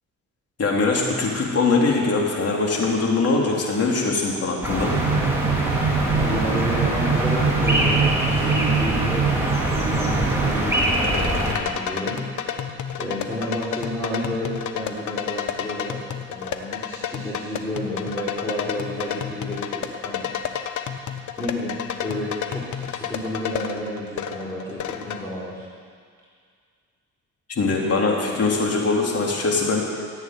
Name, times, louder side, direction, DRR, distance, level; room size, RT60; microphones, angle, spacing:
voice 1, 0.6-4.9 27.5-30.0, left 3 dB, 55° left, -2 dB, 3.8 m, -22 dB
sound 1, 4.6-11.6, right 1 dB, 10° right, 3.9 m, -23 dB
sound 2, 4.9-10.6, right 7 dB, 65° right, 1.0 m, -25 dB
voice 2, 6.2-12.2 13.0-16.0 16.3-20.3 21.4-25.6, left 1 dB, 10° left, -9 dB, 4.2 m, -31 dB
sound 3, 10.3-25.2, left 8 dB, 75° left, 1.1 m, -31 dB
14.5 x 8.8 x 9.9 m, 2.1 s
cardioid pair, 90°, 30 cm